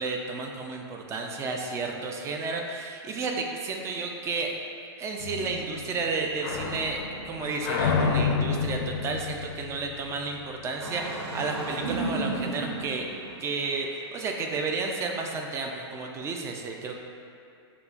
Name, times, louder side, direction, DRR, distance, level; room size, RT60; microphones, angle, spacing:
voice 1, 0.0-4.5 5.0-7.0 7.3-13.1 13.4-17.0, right 4 dB, 20° right, 2 dB, 0.4 m, -32 dB
sound 1, 5.2-10.7, left 5 dB, 55° left, 0.5 m, -30 dB
Engine starting, 10.8-13.8, right 2 dB, 90° right, 0.7 m, -33 dB
6.6 x 2.3 x 2.4 m, 2.6 s
hypercardioid pair, 125°, 14 cm